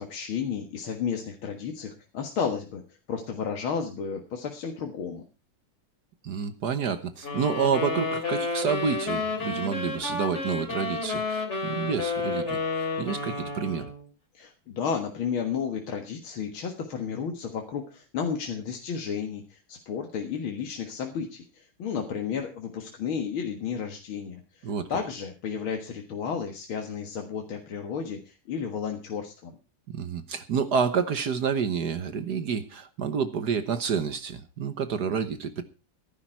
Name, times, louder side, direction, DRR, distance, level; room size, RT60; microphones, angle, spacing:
voice 1, 0.0-2.8 3.1-5.3 14.3-29.6, left 6 dB, 70° left, 3 dB, 2.4 m, -32 dB
voice 2, 6.2-12.6 13.0-13.8 24.6-24.9 29.9-35.6, right 6 dB, 55° right, 11 dB, 1.5 m, -29 dB
sound 1, 7.2-14.0, left 3 dB, 30° left, 3.2 m, -31 dB
14.5 x 12.0 x 4.5 m, 0.32 s
omnidirectional pair, 2.4 m